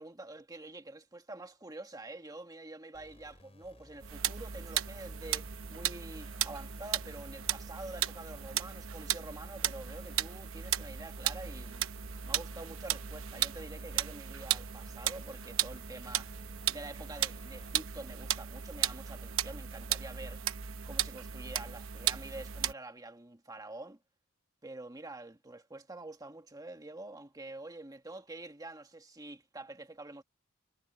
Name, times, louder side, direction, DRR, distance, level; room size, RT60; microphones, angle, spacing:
voice 1, 0.0-11.9 12.2-16.3 16.7-20.4 20.9-24.0 24.6-30.2, right 2 dB, 20° right, 1.6 m, -47 dB
sound 1, 2.9-17.8, left 1 dB, 30° left, 4.8 m, -59 dB
sound 2, 4.0-22.7, right 10 dB, 75° right, 0.9 m, -36 dB
head